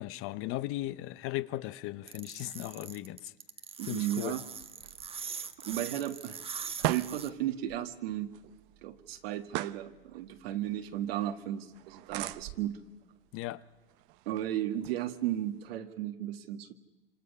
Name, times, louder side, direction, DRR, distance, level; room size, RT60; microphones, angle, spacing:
voice 1, 0.0-3.3 3.8-4.4 13.3-13.6, left 16 dB, 45° left, 0.8 m, -37 dB
sound 1, 2.1-7.3, right 6 dB, 20° right, 0.9 m, -41 dB
voice 2, 3.8-4.4 5.6-8.3 8.8-12.8 14.2-16.7, right 12 dB, 80° right, 1.8 m, -35 dB
sound 2, 4.4-15.8, right 16 dB, 55° right, 0.7 m, -42 dB
27.0 x 25.5 x 5.5 m
supercardioid pair, 120°, 30 cm